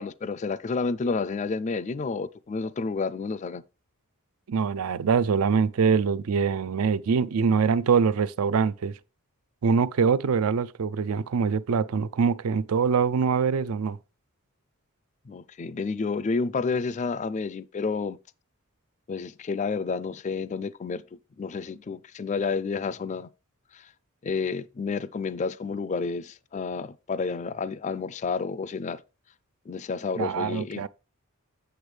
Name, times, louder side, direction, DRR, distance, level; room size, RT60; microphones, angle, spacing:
voice 1, 0.0-3.6 15.3-18.2 19.1-23.3 23.7-23.9 24.2-29.0 29.7-30.9, left 4 dB, 35° left, 0.3 m, -30 dB
voice 2, 4.5-9.0 9.6-14.0 30.2-30.9, right 6 dB, 75° right, 0.4 m, -24 dB
8.0 x 6.9 x 3.3 m
head